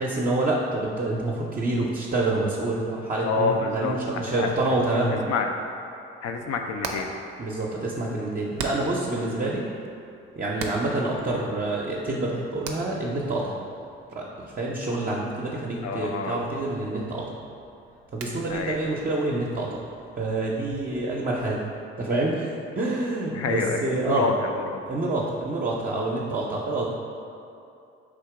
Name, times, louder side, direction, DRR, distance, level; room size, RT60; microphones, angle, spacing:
voice 1, 0.0-5.2 7.4-9.6 10.4-13.5 14.1-17.3 18.1-19.8 20.2-21.6 22.0-22.5 22.8-24.3 24.9-26.9, right 2 dB, 30° right, -4 dB, 0.6 m, -27 dB
voice 2, 3.2-4.7 5.3-5.8 6.2-7.1 15.8-16.4 18.5-18.8 23.3-24.8, left 4 dB, 55° left, 4 dB, 0.5 m, -28 dB
Hammer, 6.3-21.6, right 4 dB, 85° right, 0.5 m, -43 dB
3.7 x 2.8 x 4.7 m, 2.7 s
hypercardioid pair, 50°, 30 cm